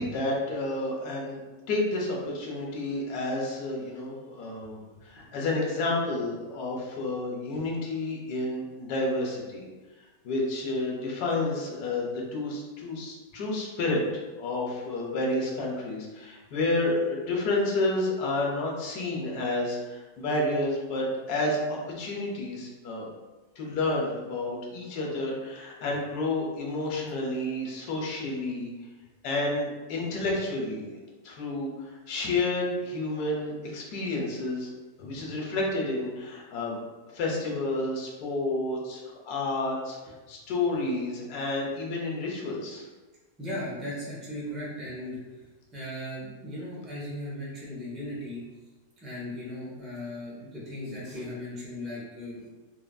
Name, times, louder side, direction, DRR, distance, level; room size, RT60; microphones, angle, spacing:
voice 1, 0.0-1.4 1.7-9.6 10.2-14.0 14.4-23.1 23.6-28.7 29.2-34.7 35.0-36.8 37.1-40.0 40.3-42.9, left 2 dB, 75° left, -2 dB, 1.2 m, -30 dB
voice 2, 43.4-45.2 45.7-48.4 49.0-52.5, left 1 dB, ahead, -8 dB, 0.4 m, -37 dB
3.4 x 2.5 x 2.2 m, 1.2 s
omnidirectional pair, 1.8 m